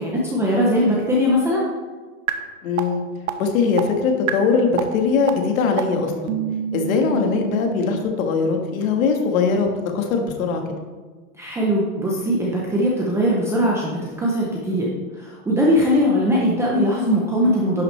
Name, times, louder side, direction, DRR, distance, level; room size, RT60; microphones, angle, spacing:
voice 1, 0.0-1.6 11.4-14.9 15.1-17.8, equal, 5° right, -4 dB, 0.6 m, -20 dB
sound 1, 2.3-2.4 2.8-2.9 3.3-3.4 3.8-3.9 4.3-4.4 4.8-4.9 5.3-5.4 5.8-5.9 6.3-8.0, right 10 dB, 75° right, 1.0 m, -26 dB
voice 2, 2.6-3.0 3.4-6.3 6.7-9.7 9.9-10.6, left 5 dB, 70° left, 3 dB, 1.7 m, -21 dB
11.0 x 6.0 x 3.3 m, 1.4 s
supercardioid pair, 155°, 43 cm